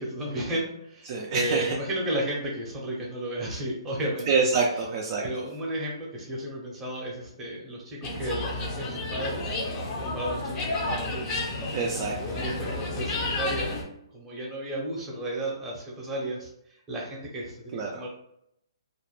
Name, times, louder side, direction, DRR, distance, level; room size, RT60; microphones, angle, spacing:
voice 1, 0.0-4.3 5.2-11.4 12.4-13.8 14.1-18.1, right 1 dB, 10° right, -4 dB, 0.7 m, -33 dB
voice 2, 1.1-1.8 4.3-5.3 11.7-12.4 17.7-18.0, right 4 dB, 35° right, -1 dB, 0.4 m, -26 dB
sound 1, 8.0-13.8, left 2 dB, 25° left, 0.6 m, -31 dB
2.4 x 2.1 x 3.1 m, 0.77 s
hypercardioid pair, 150°, 3 cm